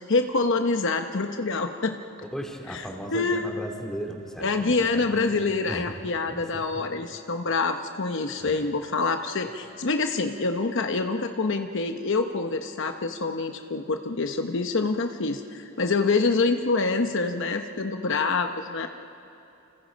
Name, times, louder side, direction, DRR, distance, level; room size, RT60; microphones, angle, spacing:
voice 1, 0.1-2.0 2.7-3.5 4.4-18.9, left 3 dB, 65° left, 6 dB, 0.9 m, -26 dB
voice 2, 2.3-5.4 5.7-5.9 6.3-6.9 8.4-8.6, equal, 5° left, 1 dB, 2.7 m, -37 dB
29.0 x 28.0 x 5.2 m, 2.8 s
head